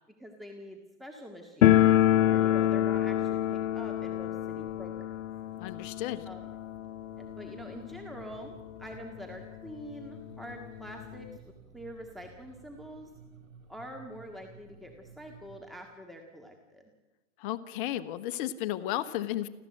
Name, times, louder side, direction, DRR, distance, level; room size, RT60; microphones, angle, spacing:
voice 1, 0.2-1.7 2.2-5.1 6.3-6.5 7.2-13.1 13.7-16.8, equal, ahead, 1 dB, 1.9 m, -45 dB
sound 1, 1.6-8.3 8.6-8.7 8.9-9.0 9.8-9.9 10.2-11.4, left 12 dB, 80° left, 0.8 m, -26 dB
voice 2, 5.6-6.2 17.4-19.5, left 13 dB, 40° left, 12 dB, 1.3 m, -33 dB
sound 2, 7.1-15.6, right 5 dB, 80° right, 5.9 m, -55 dB
29.5 x 14.0 x 7.9 m, 1.1 s
hypercardioid pair, 135°, 39 cm